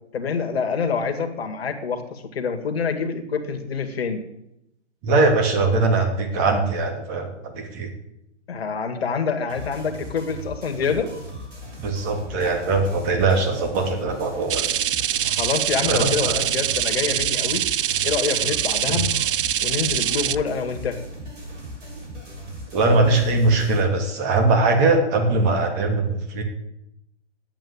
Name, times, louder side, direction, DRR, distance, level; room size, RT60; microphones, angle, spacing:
voice 1, 0.1-4.2 8.5-11.1 15.2-17.6 18.0-19.1 19.6-21.0, left 5 dB, 60° left, 6 dB, 2.1 m, -26 dB
voice 2, 5.0-7.9 11.8-14.7 15.8-16.4 18.9-19.0 22.7-26.4, right 3 dB, 30° right, 4 dB, 2.7 m, -21 dB
sound 1, 9.5-23.8, equal, 85° right, 6.9 m, -38 dB
sound 2, 14.5-20.4, right 10 dB, 50° right, 0.4 m, -24 dB
11.0 x 8.8 x 8.7 m, 0.83 s
hypercardioid pair, 135°, 35 cm